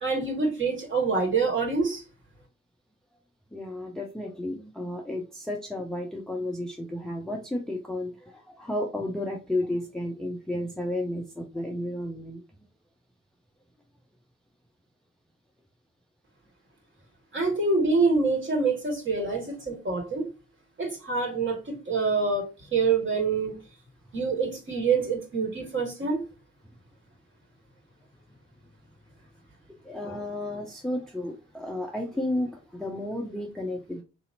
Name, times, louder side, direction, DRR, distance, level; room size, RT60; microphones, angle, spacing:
voice 1, 0.0-2.0 17.3-20.3 20.8-22.4 22.7-23.6 24.1-26.2, right 4 dB, 35° right, 1 dB, 1.7 m, -26 dB
voice 2, 3.5-12.4 29.8-34.0, left 1 dB, ahead, 1 dB, 0.6 m, -32 dB
3.9 x 2.8 x 2.6 m, 0.30 s
figure-of-eight pair, 40°, 36 cm